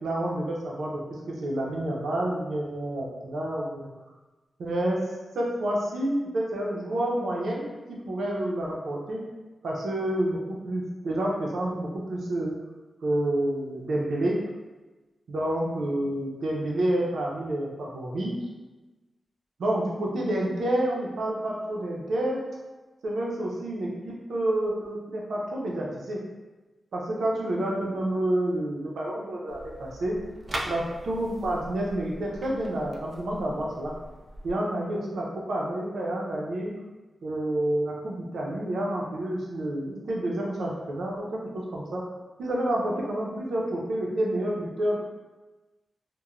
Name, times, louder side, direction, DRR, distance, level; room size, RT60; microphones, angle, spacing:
voice 1, 0.0-3.9 4.6-5.0 5.3-9.2 9.6-12.5 13.0-14.4 15.3-18.4 19.6-22.4 23.0-26.2 26.9-30.2 30.7-33.9 34.4-36.8 37.2-41.4 41.7-42.0 42.4-45.0, right 1 dB, 85° right, -3 dB, 0.5 m, -29 dB
sound 1, 29.5-34.5, right 1 dB, 30° right, 0.3 m, -40 dB
3.0 x 2.1 x 2.4 m, 1.2 s
wide cardioid pair, 165°, 0 cm